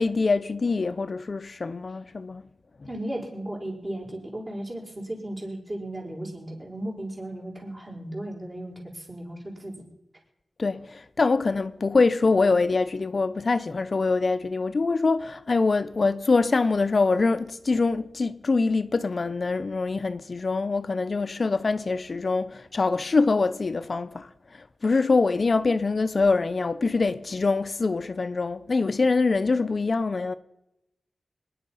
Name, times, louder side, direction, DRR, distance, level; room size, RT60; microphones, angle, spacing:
voice 1, 0.0-2.4 10.6-24.3 24.8-30.3, left 3 dB, 50° left, 0.6 m, -24 dB
voice 2, 2.8-9.9, right 1 dB, 30° right, 4.9 m, -35 dB
25.5 x 10.0 x 5.6 m
wide cardioid pair, 105°, 0 cm